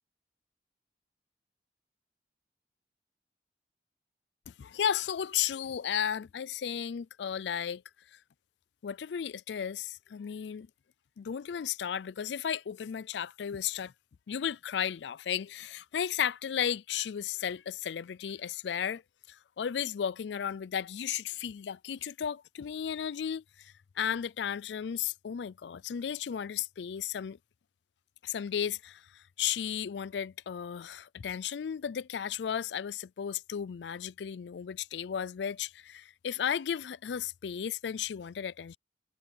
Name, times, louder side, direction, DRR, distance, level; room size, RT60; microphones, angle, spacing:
voice 1, 4.5-7.8 8.8-10.7 11.2-13.9 14.3-19.0 19.3-27.4 28.2-29.0 29.4-38.8, left 8 dB, 85° left, 0.4 m, -34 dB
head